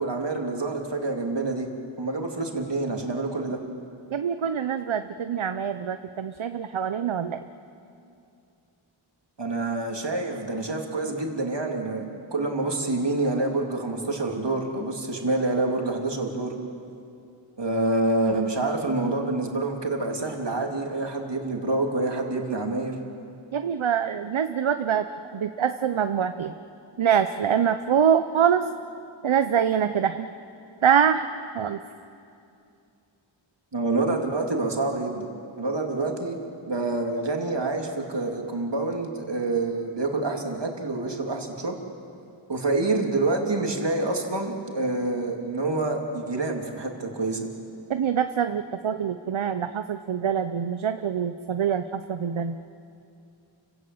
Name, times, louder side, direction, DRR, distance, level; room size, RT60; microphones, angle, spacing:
voice 1, 0.0-1.7 2.0-3.6 9.4-16.6 17.6-23.0 33.7-35.3 35.6-36.4 36.7-41.8 42.5-47.5, right 2 dB, 60° right, 2 dB, 2.9 m, -27 dB
voice 2, 4.1-7.5 23.5-25.1 25.3-26.5 27.0-28.7 29.2-30.3 30.8-31.3 31.5-31.8 47.9-52.6, right 8 dB, 75° right, 9 dB, 0.8 m, -24 dB
29.5 x 17.0 x 7.9 m, 2.6 s
wide cardioid pair, 55°, 47 cm